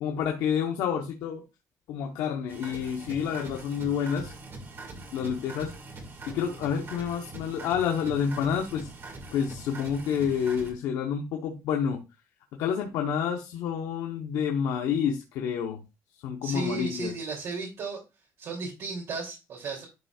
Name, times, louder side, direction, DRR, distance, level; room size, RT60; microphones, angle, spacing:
voice 1, 0.0-1.4 1.9-4.3 5.1-5.7 6.3-8.9 9.3-12.0 12.5-15.8 16.2-17.1, left 7 dB, 85° left, 3 dB, 1.0 m, -29 dB
sound 1, 2.5-10.7, right 2 dB, 40° right, 2.2 m, -43 dB
voice 2, 16.4-18.0 18.4-19.9, right 3 dB, 60° right, -4 dB, 3.0 m, -34 dB
10.5 x 5.5 x 2.4 m, 0.26 s
cardioid pair, 130°, 6 cm